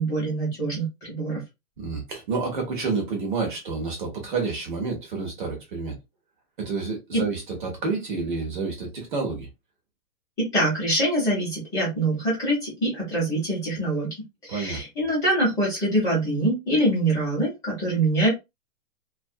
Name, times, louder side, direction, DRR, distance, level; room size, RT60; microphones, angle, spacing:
voice 1, 0.0-1.4 10.4-14.1 14.4-18.3, right 1 dB, 10° left, 0.8 m, -24 dB
voice 2, 1.8-6.0 6.6-9.5 14.5-14.8, right 4 dB, 35° right, 0.7 m, -29 dB
2.3 x 2.2 x 2.6 m
hypercardioid pair, 165°, 44 cm